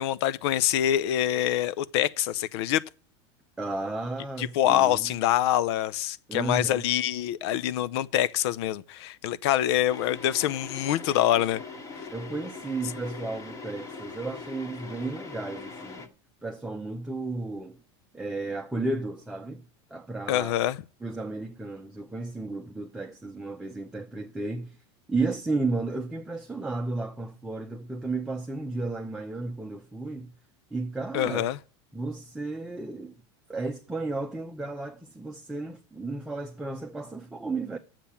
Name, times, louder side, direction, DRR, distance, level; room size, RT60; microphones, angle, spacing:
voice 1, 0.0-2.8 4.4-11.6 20.3-20.8 31.1-31.6, left 12 dB, 70° left, 0.7 m, -25 dB
voice 2, 3.6-5.1 6.3-6.9 12.1-16.1 16.4-17.8 18.1-19.6 19.9-20.5 21.0-24.8 25.1-30.3 30.7-31.5 31.9-33.1 33.5-37.8, right 3 dB, 5° right, 0.8 m, -33 dB
sound 1, 9.9-16.1, left 4 dB, 25° left, 1.6 m, -41 dB
10.0 x 7.5 x 7.0 m
supercardioid pair, 135°, 14 cm